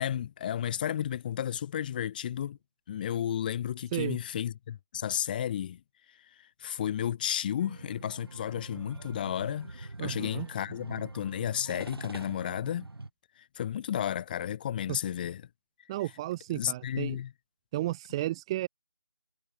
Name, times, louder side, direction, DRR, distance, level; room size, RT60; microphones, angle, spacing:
voice 1, 0.0-2.6 2.9-5.8 6.6-12.9 13.6-15.4 16.5-17.3, left 10 dB, 20° left, 5.3 m, -32 dB
sound 1, 7.6-13.1, right 2 dB, 60° right, 7.6 m, -44 dB
voice 2, 10.0-10.5 14.9-15.0 15.9-17.2 17.7-18.7, right 15 dB, 10° right, 1.4 m, -33 dB
figure-of-eight pair, 160°, 14 cm